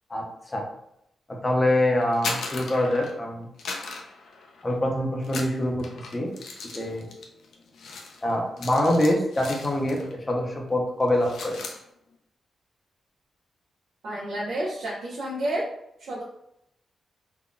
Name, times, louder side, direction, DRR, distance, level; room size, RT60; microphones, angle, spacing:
voice 1, 1.4-3.5 4.6-5.9 6.1-6.3 6.7-7.1 8.2-11.6, left 1 dB, 20° left, -1 dB, 0.5 m, -24 dB
sound 1, 2.0-3.3 3.6-4.8 5.2-10.2 10.4-10.7 11.0-11.8, left 3 dB, 85° left, 0.4 m, -37 dB
voice 2, 14.0-15.7 16.0-16.2, right 1 dB, 80° right, -8 dB, 0.6 m, -30 dB
3.5 x 2.2 x 2.5 m, 0.79 s
wide cardioid pair, 150°, 0 cm